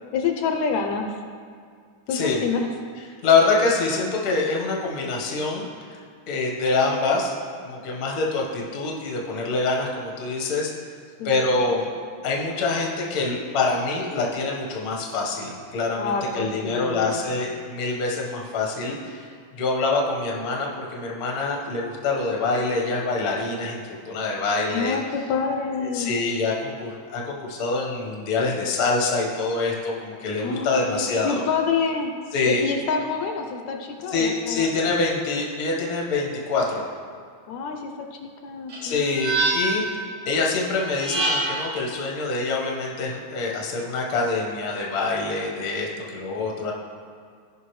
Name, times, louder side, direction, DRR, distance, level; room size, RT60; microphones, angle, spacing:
voice 1, 0.1-1.1 2.1-2.7 11.2-11.5 16.0-17.2 24.7-26.1 30.4-32.1 32.5-35.0 37.5-39.1, left 5 dB, 75° left, 4 dB, 1.9 m, -27 dB
voice 2, 2.1-2.4 3.2-6.0 6.3-7.3 7.6-10.7 11.2-11.9 12.2-19.2 19.6-25.0 25.9-31.4 32.3-32.6 34.1-36.8 38.8-39.8 40.2-46.7, left 3 dB, 45° left, -1 dB, 1.2 m, -25 dB
sound 1, 38.7-39.9 40.9-41.7, right 2 dB, 60° right, 2.8 m, -25 dB
16.0 x 5.7 x 3.2 m, 2.1 s
omnidirectional pair, 3.4 m